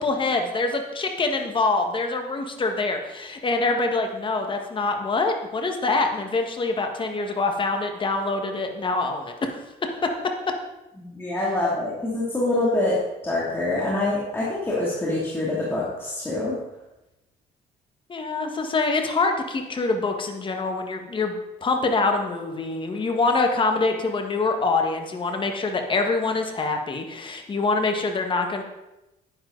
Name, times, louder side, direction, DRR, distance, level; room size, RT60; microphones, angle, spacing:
voice 1, 0.0-9.6 10.0-10.5 18.1-21.3 21.6-28.6, left 3 dB, 30° left, 4 dB, 1.6 m, -25 dB
voice 2, 11.0-13.0 13.2-16.6, left 2 dB, 15° left, -7 dB, 2.7 m, -25 dB
10.0 x 10.0 x 4.0 m, 0.97 s
cardioid pair, 110°, 17 cm